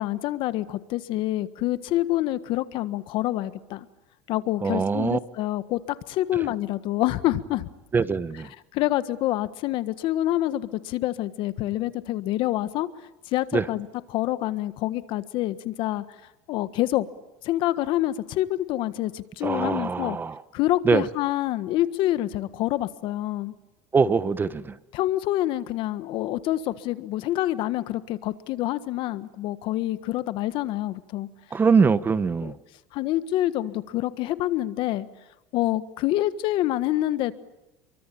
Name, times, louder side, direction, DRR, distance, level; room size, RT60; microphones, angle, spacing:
voice 1, 0.0-3.9 4.3-5.8 6.1-7.7 8.7-12.9 13.3-16.0 16.5-17.1 17.4-20.2 20.5-23.5 24.9-31.3 32.4-32.5 32.9-35.1 35.5-37.3, left 15 dB, 55° left, 14 dB, 1.5 m, -27 dB
voice 2, 4.6-5.2 7.9-8.5 13.5-13.6 19.4-20.4 20.8-21.0 23.9-24.8 31.5-32.5, right 5 dB, 20° right, 15 dB, 1.0 m, -22 dB
28.5 x 23.5 x 8.7 m, 0.94 s
supercardioid pair, 125°, 10 cm